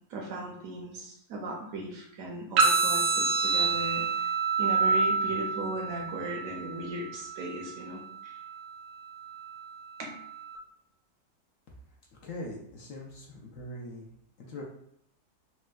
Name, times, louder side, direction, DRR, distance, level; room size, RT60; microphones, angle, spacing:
voice 1, 0.1-4.3 4.6-8.3 10.0-10.1, right 2 dB, 70° right, 0 dB, 0.9 m, -37 dB
sound 1, 2.6-10.6, right 4 dB, 85° right, 1.2 m, -29 dB
voice 2, 12.2-14.1 14.5-14.6, left 1 dB, 70° left, -2 dB, 0.9 m, -41 dB
4.2 x 2.1 x 2.2 m, 0.72 s
omnidirectional pair, 1.7 m